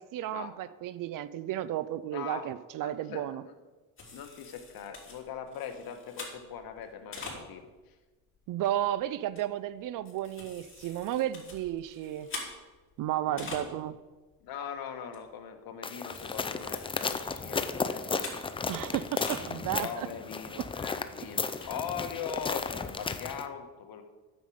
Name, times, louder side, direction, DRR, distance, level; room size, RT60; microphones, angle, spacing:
voice 1, 0.0-3.4 8.5-12.3 13.0-14.0 18.7-20.1 20.6-20.7, right 12 dB, 50° right, 17 dB, 0.5 m, -33 dB
voice 2, 2.1-2.5 2.8-3.5 4.1-7.6 13.3-13.7 14.4-18.1 19.8-24.0, left 7 dB, 55° left, 7 dB, 1.4 m, -41 dB
sound 1, 4.0-7.8 8.4-8.5 8.8-8.9 9.3-9.4 9.8-14.0 14.3-14.4 14.7-14.8 15.1-15.5 15.9-18.7 18.9-19.5 19.9-20.0 20.4-20.5 20.8-20.9 21.4-23.0, left 3 dB, 30° left, 3.2 m, -45 dB
sound 2, 15.8-23.5, left 4 dB, 15° left, 0.4 m, -34 dB
9.4 x 7.3 x 4.9 m, 1.3 s
supercardioid pair, 95°, 41 cm